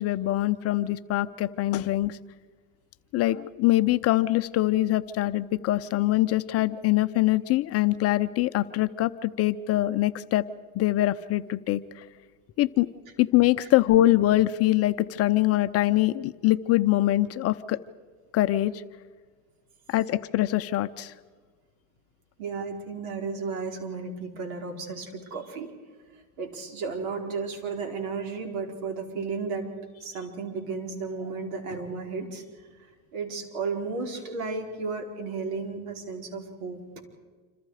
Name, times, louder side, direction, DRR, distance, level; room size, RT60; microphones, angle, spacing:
voice 1, 0.0-2.2 3.1-10.5 10.7-12.1 12.6-12.9 13.2-17.8 18.3-18.8 19.9-21.1, left 15 dB, 35° left, 11 dB, 0.7 m, -23 dB
voice 2, 22.4-25.7 26.4-29.7 30.0-32.4 33.1-36.8, right 4 dB, 70° right, 3 dB, 4.9 m, -33 dB
27.0 x 26.0 x 5.0 m, 1.5 s
supercardioid pair, 125°, 42 cm